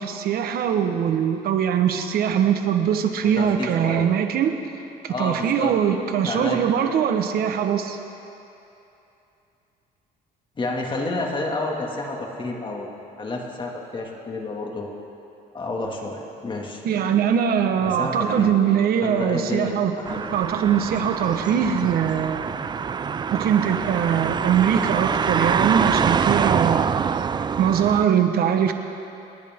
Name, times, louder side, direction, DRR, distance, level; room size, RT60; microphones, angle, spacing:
voice 1, 0.0-4.5 5.0-8.0 16.8-20.0 20.3-22.4 23.3-26.9 27.6-28.7, right 8 dB, 65° right, 6 dB, 1.2 m, -22 dB
voice 2, 3.4-4.1 5.1-5.7 6.2-7.0 10.6-14.9 15.5-16.8 17.8-18.5 19.0-20.3, left 2 dB, 30° left, 0 dB, 2.2 m, -30 dB
sound 1, 20.1-28.1, right 6 dB, 25° right, 0.4 m, -25 dB
28.0 x 10.0 x 3.7 m, 2.9 s
cardioid pair, 110°, 17 cm